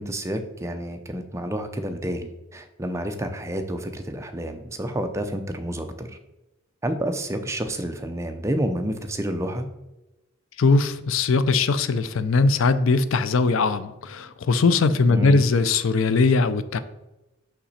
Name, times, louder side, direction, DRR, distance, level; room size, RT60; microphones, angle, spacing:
voice 1, 0.0-6.2 6.8-9.7 15.1-15.4, right 1 dB, 15° right, 6 dB, 0.5 m, -29 dB
voice 2, 10.6-16.8, left 4 dB, 75° left, 13 dB, 0.5 m, -20 dB
6.0 x 5.8 x 4.2 m, 1.0 s
head